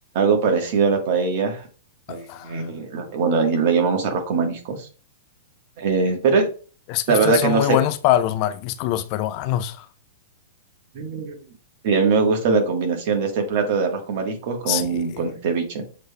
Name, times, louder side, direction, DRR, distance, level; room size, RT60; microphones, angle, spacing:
voice 1, 0.1-1.7 2.1-4.9 5.8-6.5 7.1-7.8 10.9-11.4 11.8-15.8, right 5 dB, 55° right, 1.3 m, -21 dB
voice 2, 2.1-2.6 6.9-9.9 14.6-15.2, left 13 dB, 45° left, 0.4 m, -24 dB
6.5 x 3.2 x 2.2 m
hypercardioid pair, 115°, 0 cm